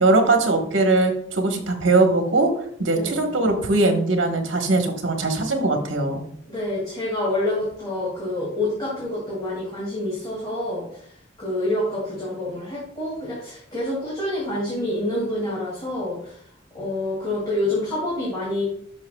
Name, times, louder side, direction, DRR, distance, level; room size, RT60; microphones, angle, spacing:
voice 1, 0.0-2.5 2.8-6.2, right 2 dB, 75° right, 3 dB, 1.3 m, -20 dB
voice 2, 2.9-3.3 6.5-16.4 16.7-18.6, left 1 dB, 25° left, -7 dB, 2.5 m, -27 dB
11.5 x 5.7 x 2.3 m, 0.65 s
head